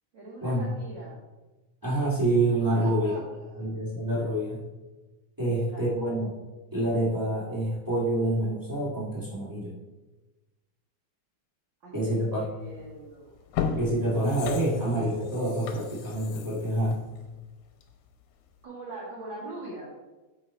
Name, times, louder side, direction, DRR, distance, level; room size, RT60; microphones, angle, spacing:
voice 1, 0.1-1.2 2.4-3.6 5.4-5.8 11.8-13.4 18.6-19.9, right 2 dB, 50° right, -6 dB, 1.6 m, -42 dB
voice 2, 1.8-3.1 3.6-4.6 5.4-6.3 6.7-9.7 11.9-12.4 13.8-17.0, right 1 dB, 10° right, -7 dB, 1.6 m, -27 dB
sound 1, 12.8-12.9 13.4-18.1 18.5-18.6, left 6 dB, 80° left, 2.2 m, -35 dB
9.4 x 4.4 x 4.3 m, 1.1 s
omnidirectional pair, 3.5 m